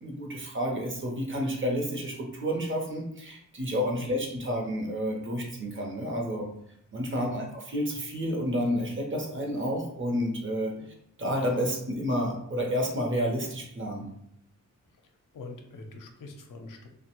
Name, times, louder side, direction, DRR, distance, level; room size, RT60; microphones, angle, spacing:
voice 1, 0.0-6.5 6.9-10.7 11.2-14.1, equal, 35° right, 1 dB, 0.7 m, -30 dB
voice 2, 3.9-4.3 7.1-7.5 10.8-10.9 15.0-16.9, left 3 dB, 70° left, 3 dB, 0.6 m, -45 dB
2.8 x 2.1 x 2.9 m, 0.73 s
cardioid pair, 80°, 33 cm